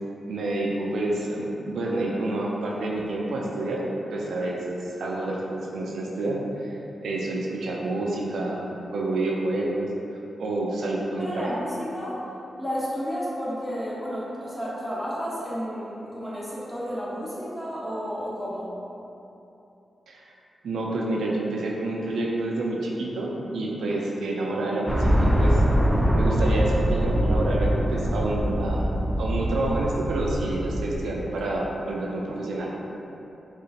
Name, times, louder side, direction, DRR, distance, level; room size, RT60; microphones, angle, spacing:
voice 1, 0.3-3.8 4.1-6.8 7.0-9.9 10.4-11.5 20.1-20.2 20.6-25.6 26.1-28.9 29.2-32.9, right 2 dB, 80° right, -3 dB, 0.4 m, -28 dB
voice 2, 11.2-12.2 12.6-18.7, equal, 10° left, -8 dB, 1.1 m, -32 dB
sound 1, 24.9-31.1, equal, 5° right, 0.4 m, -23 dB
3.7 x 2.4 x 2.8 m, 2.9 s
supercardioid pair, 45°, 0 cm